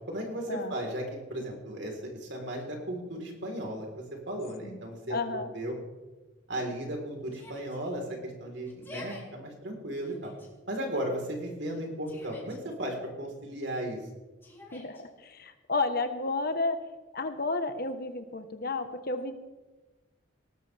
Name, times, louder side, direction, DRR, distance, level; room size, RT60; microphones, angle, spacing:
voice 1, 0.1-5.7 6.5-10.3 10.7-14.0, right 1 dB, 65° right, 1 dB, 4.2 m, -35 dB
voice 2, 4.6-5.5 14.7-16.8 17.1-19.3, left 3 dB, 50° left, 8 dB, 1.3 m, -32 dB
Yell, 7.3-7.8 8.6-9.2 10.0-10.5 11.7-12.6 14.4-15.0, left 2 dB, 10° left, 3.9 m, -47 dB
19.5 x 19.0 x 3.6 m, 1.2 s
head